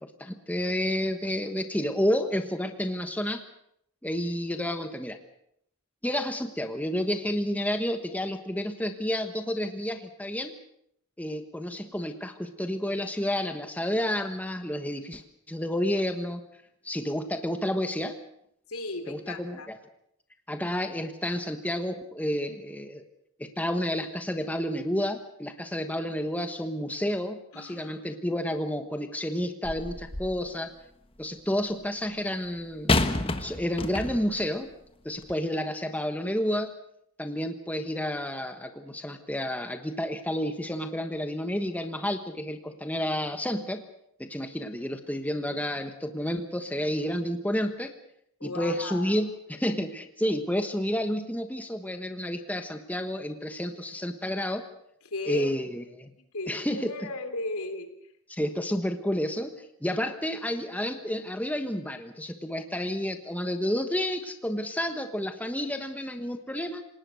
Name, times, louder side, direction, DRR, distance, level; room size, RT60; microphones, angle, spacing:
voice 1, 0.0-3.4 4.0-5.2 6.0-10.6 11.2-15.2 15.5-16.4 16.8-18.2 19.1-19.8 20.5-23.0 23.4-30.7 31.2-32.9 33.4-34.7 35.0-36.7 37.2-43.8 44.2-47.9 48.4-54.6 55.3-56.1 56.5-56.9 58.3-66.8, equal, 5° left, 7 dB, 1.2 m, -30 dB
voice 2, 18.7-19.7 27.5-28.0 48.4-49.2 55.0-55.5 56.3-57.9, left 2 dB, 80° left, 8 dB, 3.2 m, -36 dB
sound 1, 29.6-30.5 32.9-34.4 35.2-35.3, left 2 dB, 25° left, 1.3 m, -28 dB
27.5 x 18.5 x 6.4 m, 0.73 s
head